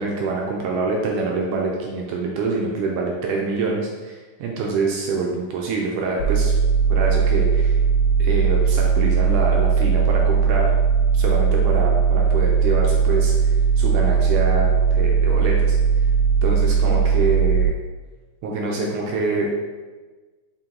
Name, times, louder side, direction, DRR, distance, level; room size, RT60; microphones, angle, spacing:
voice 1, 0.0-6.6 6.9-7.8 8.2-10.7 11.1-15.8 16.4-17.7 18.4-19.5, right 3 dB, 75° right, -1 dB, 2.0 m, -25 dB
sound 1, 6.2-17.7, right 6 dB, 85° left, 2.6 m, -18 dB
5.8 x 4.4 x 3.8 m, 1.3 s
omnidirectional pair, 4.2 m